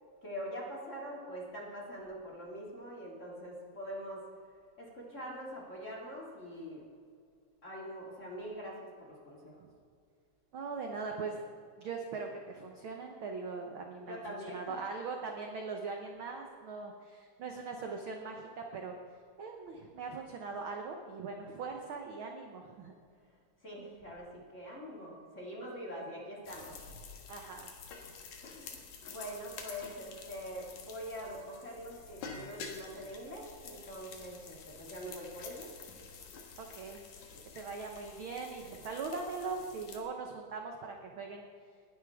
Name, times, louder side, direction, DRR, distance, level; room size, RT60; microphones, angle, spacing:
voice 1, 0.2-4.3 4.8-6.8 7.6-9.6 14.0-14.8 16.1-16.2 23.2-23.3 23.6-26.9 28.4-35.7 37.3-37.4, equal, 25° left, -3 dB, 2.4 m, -44 dB
voice 2, 10.5-11.4 11.8-14.2 14.5-19.0 19.4-22.9 27.3-27.7 36.6-37.0 37.5-41.4, right 4 dB, 65° right, 3 dB, 1.3 m, -41 dB
sound 1, 26.4-40.0, left 5 dB, 70° left, 2.8 m, -49 dB
20.0 x 11.0 x 3.6 m, 2.3 s
omnidirectional pair, 3.5 m